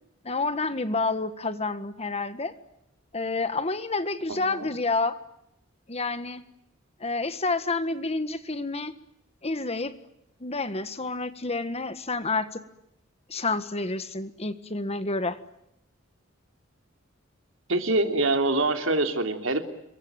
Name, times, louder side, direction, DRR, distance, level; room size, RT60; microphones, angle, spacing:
voice 1, 0.2-2.5 3.1-5.2 5.9-6.4 7.0-8.9 9.4-10.0 10.4-12.6 13.3-15.4, left 3 dB, 30° left, 11 dB, 1.6 m, -29 dB
voice 2, 4.3-4.7 17.7-19.7, right 2 dB, 70° right, 6 dB, 3.3 m, -25 dB
27.5 x 23.0 x 9.1 m, 0.81 s
head